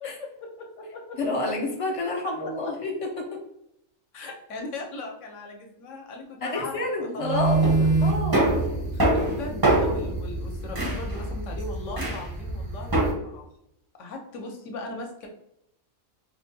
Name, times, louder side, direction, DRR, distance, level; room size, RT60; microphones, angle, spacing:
voice 1, 0.0-1.2 2.1-2.4 2.6-2.7 4.1-6.9 7.1-7.5 8.9-13.5 14.0-15.3, left 2 dB, 70° left, 2 dB, 1.0 m, -38 dB
voice 2, 1.2-2.9 3.2-3.4 6.4-7.6 8.0-8.4, left 2 dB, 40° left, -1 dB, 0.4 m, -29 dB
sound 1, 7.2-13.1, right 2 dB, 25° right, 0.5 m, -24 dB
4.9 x 2.2 x 2.6 m, 0.79 s
omnidirectional pair, 1.4 m